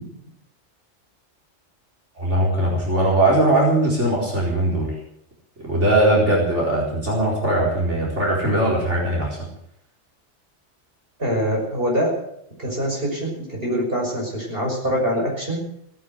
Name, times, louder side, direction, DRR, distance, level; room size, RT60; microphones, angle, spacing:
voice 1, 2.2-4.9 5.6-9.4, right 1 dB, 65° right, -4 dB, 4.7 m, -20 dB
voice 2, 11.2-12.1 12.6-15.6, equal, 45° right, -2 dB, 6.3 m, -24 dB
18.0 x 9.6 x 7.9 m, 0.74 s
omnidirectional pair, 1.3 m